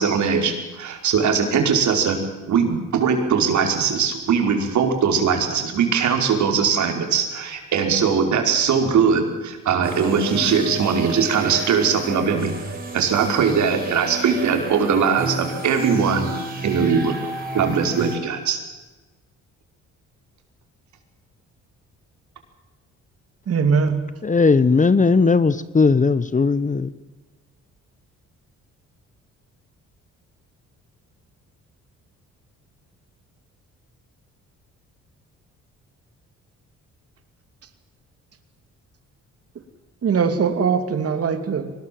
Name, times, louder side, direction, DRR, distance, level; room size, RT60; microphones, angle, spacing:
voice 1, 0.0-2.2 2.5-12.5 12.9-16.3 16.6-17.2 17.5-18.6, right 6 dB, 70° right, 4 dB, 5.0 m, -20 dB
sound 1, 9.8-18.2, right 2 dB, 30° right, 6.0 m, -31 dB
voice 2, 23.5-24.1 40.0-41.7, right 5 dB, 50° right, 8 dB, 2.6 m, -21 dB
voice 3, 24.2-26.9, left 4 dB, 25° left, 16 dB, 1.0 m, -17 dB
24.0 x 20.0 x 7.7 m, 1.2 s
cardioid pair, 90°, 30 cm